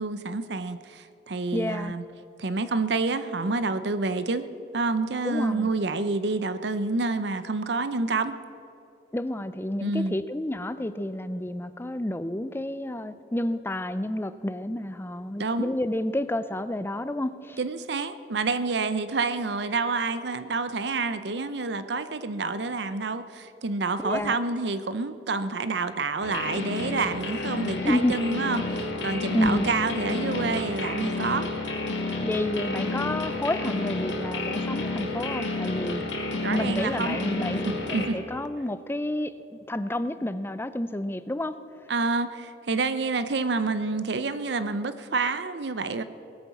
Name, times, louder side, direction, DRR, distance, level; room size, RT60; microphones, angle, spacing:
voice 1, 0.0-2.0 2.4-4.5 4.7-8.4 9.8-10.2 15.4-15.7 17.6-31.5 35.8-35.9 36.4-37.2 37.6-38.2 41.9-46.0, right 3 dB, 65° right, 12 dB, 0.7 m, -28 dB
voice 2, 1.5-1.9 5.2-5.7 9.1-17.6 24.0-24.4 27.8-28.1 29.3-29.7 32.2-36.1 36.5-37.6 37.9-41.6, left 1 dB, 10° left, 13 dB, 0.5 m, -30 dB
sound 1, 26.2-38.1, left 2 dB, 80° left, 2.1 m, -30 dB
19.5 x 8.8 x 7.1 m, 2.8 s
head